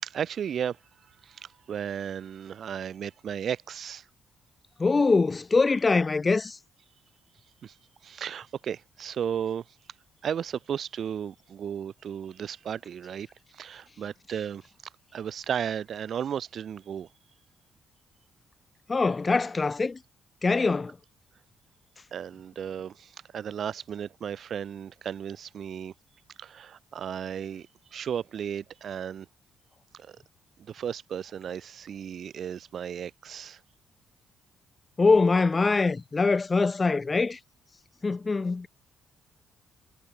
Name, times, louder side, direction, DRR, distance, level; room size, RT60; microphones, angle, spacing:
voice 1, 0.0-0.8 1.2-4.0 7.6-7.7 8.0-9.6 10.2-13.3 13.5-14.6 15.1-17.1 22.1-25.9 26.4-29.3 29.9-30.2 30.6-33.6, right 8 dB, 60° right, 6.1 m, -34 dB
voice 2, 4.8-6.6 18.9-20.0 20.4-20.9 35.0-37.4 38.0-38.7, left 4 dB, 25° left, 1.7 m, -23 dB
cardioid pair, 90°, 0 cm